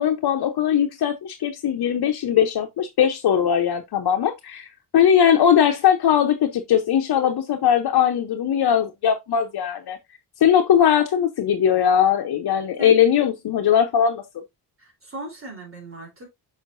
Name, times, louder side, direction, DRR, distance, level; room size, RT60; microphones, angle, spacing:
voice 1, 0.0-10.0 10.4-14.2, left 9 dB, 70° left, 0.8 m, -20 dB
voice 2, 14.8-16.3, right 2 dB, 35° right, 3.5 m, -37 dB
6.5 x 5.7 x 2.5 m
wide cardioid pair, 135°, 39 cm